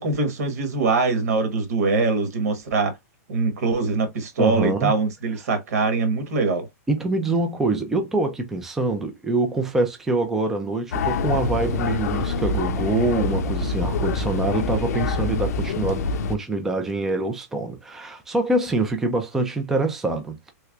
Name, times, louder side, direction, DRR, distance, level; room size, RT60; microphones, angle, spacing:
voice 1, 0.0-3.0 3.3-6.7, right 3 dB, 70° right, 1.3 m, -23 dB
voice 2, 4.4-5.0 6.9-20.5, right 2 dB, 5° right, 0.3 m, -25 dB
sound 1, 10.9-16.3, left 3 dB, 70° left, 0.5 m, -25 dB
3.3 x 3.0 x 2.3 m
supercardioid pair, 175°, 9 cm